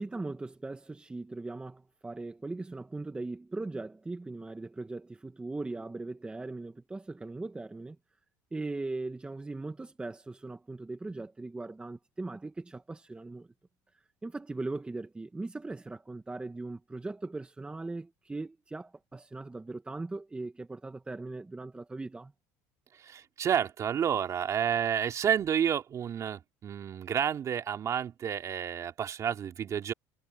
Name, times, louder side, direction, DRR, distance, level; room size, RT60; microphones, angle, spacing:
voice 1, 0.0-8.0 8.5-13.5 14.2-22.3, right 2 dB, 15° right, 1.3 m, -39 dB
voice 2, 22.9-29.9, right 8 dB, 40° right, 3.1 m, -30 dB
supercardioid pair, 110°, 8 cm